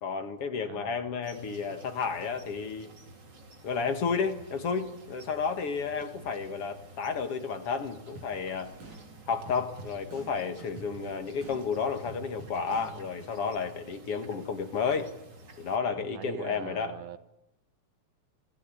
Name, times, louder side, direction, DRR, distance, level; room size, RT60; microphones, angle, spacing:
voice 1, 0.0-2.9 3.6-8.7 9.3-15.1 15.6-16.9, left 5 dB, 55° left, 2.4 m, -32 dB
voice 2, 0.7-1.0 6.2-6.3 16.0-17.2, right 9 dB, 75° right, 2.6 m, -42 dB
sound 1, 1.2-15.8, right 1 dB, 35° right, 3.3 m, -51 dB
sound 2, 8.2-13.4, right 2 dB, 90° right, 8.0 m, -49 dB
26.5 x 19.5 x 8.6 m
omnidirectional pair, 3.4 m